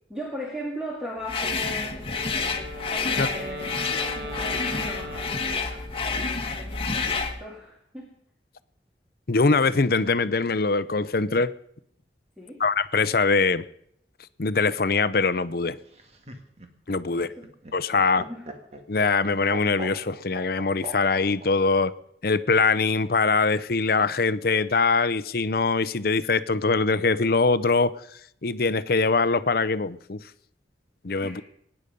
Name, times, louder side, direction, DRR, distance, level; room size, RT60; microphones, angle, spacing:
voice 1, 0.1-2.8 3.1-8.2 12.4-12.6 17.1-17.5 18.2-18.5 31.2-31.4, equal, 5° right, 2.1 m, -39 dB
sound 1, 1.3-7.4, left 4 dB, 30° left, 1.5 m, -29 dB
Wind instrument woodwind instrument, 2.1-6.2, left 1 dB, 65° right, 1.5 m, -38 dB
voice 2, 9.3-11.5 12.6-13.6 14.4-15.8 16.9-17.3 17.7-18.2 18.9-21.9 22.2-28.0 28.4-30.2 31.0-31.4, left 4 dB, 55° left, 0.7 m, -23 dB
Laughter, 15.8-21.5 22.8-23.5, right 1 dB, 35° right, 1.8 m, -41 dB
23.0 x 10.0 x 5.3 m
head